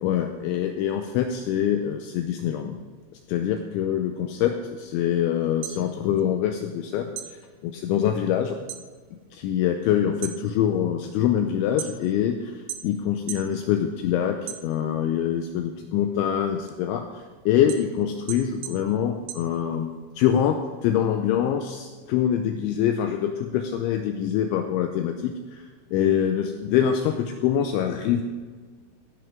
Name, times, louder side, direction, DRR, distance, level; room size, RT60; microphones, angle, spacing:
voice 1, 0.0-2.8 3.3-7.1 7.6-8.6 9.3-12.6 12.8-17.0 17.5-25.6 25.9-28.2, left 9 dB, 85° left, 5 dB, 2.7 m, -24 dB
sound 1, 5.4-6.8 7.1-8.9 9.2-9.7 10.1-12.3 12.7-13.5 13.9-15.1 15.6-20.1, right 11 dB, 80° right, 2.8 m, -39 dB
17.0 x 10.5 x 3.7 m, 1.5 s
omnidirectional pair, 6.0 m